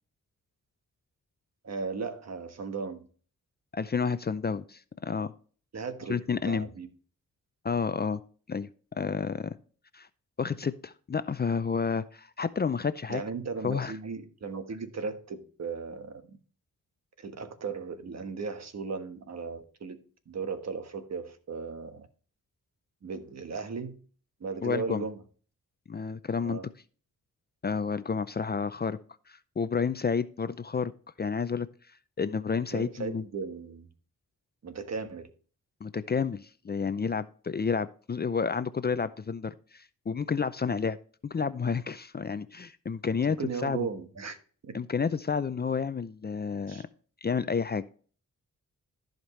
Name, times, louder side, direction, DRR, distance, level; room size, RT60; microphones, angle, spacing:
voice 1, 1.6-3.1 5.7-6.9 13.1-16.2 17.2-20.0 20.3-22.1 23.0-24.0 24.4-25.2 26.4-26.7 32.7-33.9 34.6-35.3 43.3-44.4 44.6-44.8 46.7-46.8, right 5 dB, 55° right, 1.3 m, -36 dB
voice 2, 3.7-5.3 6.1-6.7 7.6-8.2 8.5-9.6 9.9-10.1 10.4-13.2 13.6-13.9 24.6-25.0 25.9-26.6 27.6-29.0 29.3-30.9 31.2-31.7 32.2-33.2 35.8-41.0 41.2-43.9 44.7-46.8 47.2-47.8, left 5 dB, 30° left, 0.5 m, -30 dB
14.0 x 5.2 x 3.2 m
cardioid pair, 70°, 32 cm